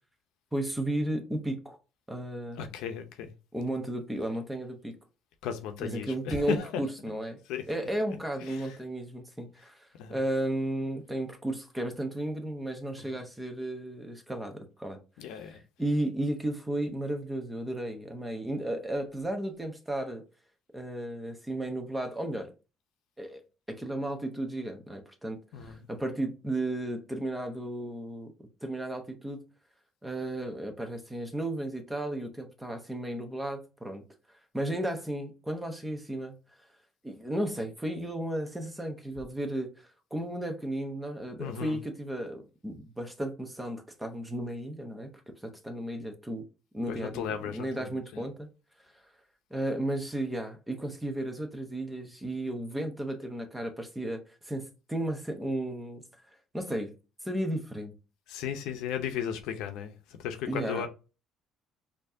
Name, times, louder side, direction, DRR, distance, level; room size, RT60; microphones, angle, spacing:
voice 1, 0.5-1.8 2.1-2.7 3.5-4.9 5.8-7.4 7.7-15.0 15.4-20.2 20.7-22.5 23.2-23.4 23.7-28.3 28.6-29.4 30.0-34.0 34.5-36.4 37.0-45.1 45.4-46.4 46.7-48.5 49.5-56.0 56.5-56.9 57.2-57.9 60.5-60.9, right 1 dB, 10° right, 0.9 m, -34 dB
voice 2, 2.6-3.3 5.4-6.8 7.5-7.6 8.4-8.8 9.9-10.2 13.0-13.2 15.2-15.6 25.5-25.9 41.4-41.8 46.9-48.3 58.3-60.9, left 8 dB, 85° left, 0.7 m, -36 dB
4.4 x 2.8 x 2.7 m
cardioid pair, 125°, 0 cm